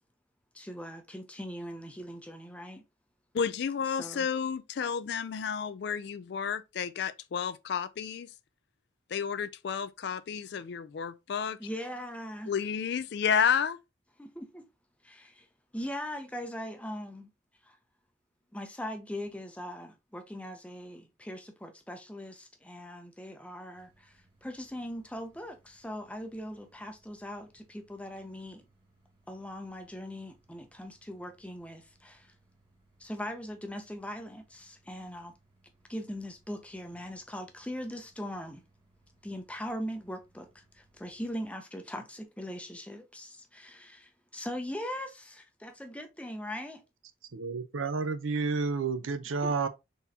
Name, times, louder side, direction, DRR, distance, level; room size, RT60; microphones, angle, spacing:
voice 1, 0.5-2.8 4.0-4.3 11.6-12.5 14.2-14.6 15.0-15.5 15.7-17.3 17.6-17.8 18.5-28.6 29.3-32.3 33.0-35.3 35.9-38.6 39.2-46.8 49.4-49.5, equal, 5° left, 0.6 m, -40 dB
voice 2, 3.3-8.3 9.1-11.6 12.5-13.8, left 7 dB, 55° left, 0.3 m, -31 dB
sound 1, 23.7-41.5, right 2 dB, 25° right, 1.4 m, -67 dB
voice 3, 47.2-49.7, right 4 dB, 80° right, 0.6 m, -30 dB
4.1 x 3.6 x 2.7 m
head